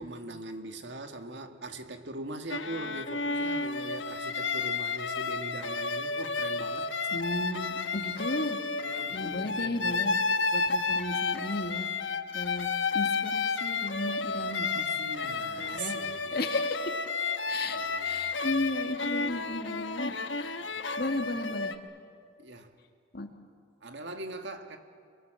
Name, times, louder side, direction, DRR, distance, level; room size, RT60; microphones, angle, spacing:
voice 1, 0.0-7.1 8.8-10.0 15.0-16.4 17.7-18.4 20.7-21.0 22.4-22.7 23.8-24.8, right 2 dB, 65° right, 6 dB, 2.0 m, -41 dB
sound 1, 2.5-21.7, left 4 dB, 75° left, 1.2 m, -31 dB
voice 2, 7.1-8.6 9.1-10.2 10.5-11.9 12.3-12.7 12.9-16.0 16.3-16.8 17.5-20.6 21.0-21.7 23.1-23.3, left 2 dB, 55° left, 5 dB, 2.0 m, -35 dB
28.5 x 22.5 x 7.7 m, 2.1 s
head